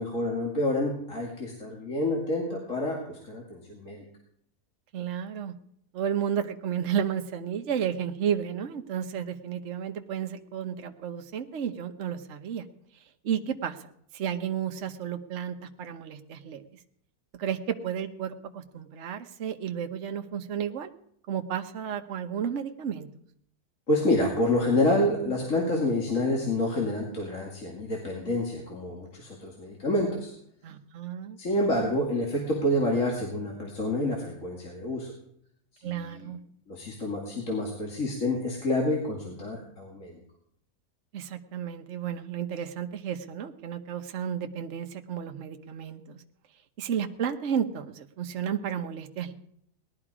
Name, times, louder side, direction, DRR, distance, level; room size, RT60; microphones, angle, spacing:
voice 1, 0.0-4.0 23.9-30.3 31.4-35.1 35.8-36.3 36.7-40.2, left 1 dB, 50° left, -2 dB, 2.7 m, -28 dB
voice 2, 4.9-5.5 5.9-12.7 12.9-16.8 17.4-20.9 21.3-23.1 30.6-31.4 35.8-36.4 41.1-46.2 46.8-49.3, right 8 dB, 50° right, 5 dB, 1.1 m, -32 dB
19.0 x 12.0 x 4.9 m, 0.70 s
omnidirectional pair, 1.7 m